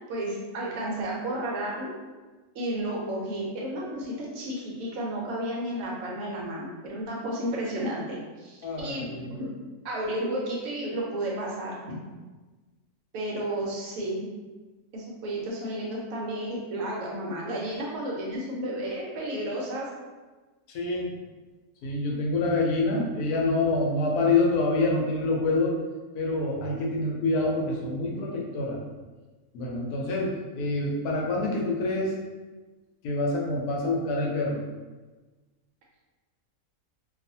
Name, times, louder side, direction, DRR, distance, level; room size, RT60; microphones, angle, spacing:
voice 1, 0.1-1.9 2.5-9.5 9.8-12.0 13.1-14.3 14.9-19.9, right 1 dB, 70° right, -3 dB, 1.0 m, -32 dB
voice 2, 8.6-9.3 20.7-21.1 21.8-25.8 26.1-28.8 29.5-32.1 33.0-34.6, left 2 dB, 85° left, -2 dB, 1.1 m, -26 dB
2.6 x 2.4 x 2.6 m, 1.3 s
omnidirectional pair, 1.6 m